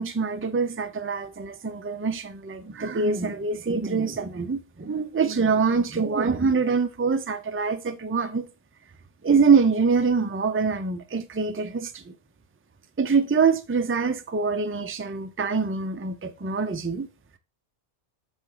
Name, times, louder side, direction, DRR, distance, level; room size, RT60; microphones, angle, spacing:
voice 1, 0.0-8.5 9.2-12.1 13.0-17.1, right 5 dB, 20° right, 0.3 m, -24 dB
7.6 x 4.5 x 3.8 m
omnidirectional pair, 1.2 m